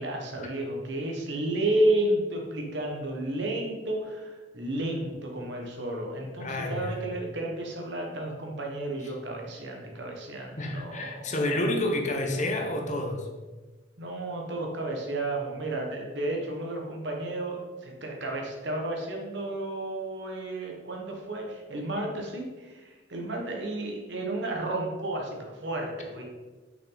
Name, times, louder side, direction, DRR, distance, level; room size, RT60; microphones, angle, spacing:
voice 1, 0.0-11.7 14.0-26.2, right 1 dB, 60° right, 0 dB, 1.5 m, -32 dB
voice 2, 6.4-7.0 10.6-13.3, left 1 dB, 40° left, 3 dB, 1.0 m, -29 dB
6.3 x 5.8 x 4.0 m, 1.3 s
head